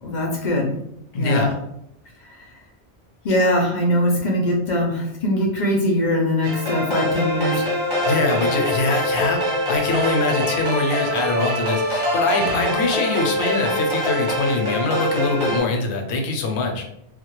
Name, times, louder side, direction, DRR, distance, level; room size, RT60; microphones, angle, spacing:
voice 1, 0.0-0.7 1.1-1.5 3.2-7.7 12.4-12.7, left 1 dB, 55° left, -1 dB, 0.5 m, -21 dB
voice 2, 1.1-1.5 8.1-16.8, left 3 dB, 80° left, 3 dB, 0.8 m, -23 dB
sound 1, 6.4-15.6, left 1 dB, 30° right, 0.9 m, -23 dB
2.2 x 2.1 x 2.9 m, 0.78 s
omnidirectional pair, 1.1 m